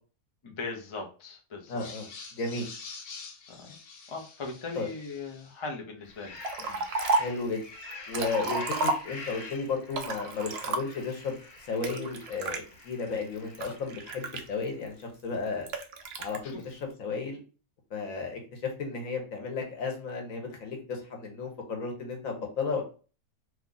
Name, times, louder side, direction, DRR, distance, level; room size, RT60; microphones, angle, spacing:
voice 1, 0.4-1.8 3.5-3.7 4.1-6.8 16.1-16.6, left 3 dB, 45° left, 1 dB, 0.3 m, -40 dB
sound 1, 1.7-5.6 6.0-14.7, left 3 dB, 90° left, 1.3 m, -46 dB
voice 2, 1.7-2.7 4.7-4.9 7.1-7.6 8.1-11.3 11.7-15.7 16.2-17.4 17.9-22.8, left 4 dB, 65° left, 2 dB, 1.2 m, -34 dB
Liquid, 6.4-7.4 7.9-9.4 9.9-11.1 11.8-12.6 13.2-14.9 15.7-16.4, right 3 dB, 65° right, 0.6 m, -31 dB
2.9 x 2.4 x 3.7 m, 0.37 s
omnidirectional pair, 1.6 m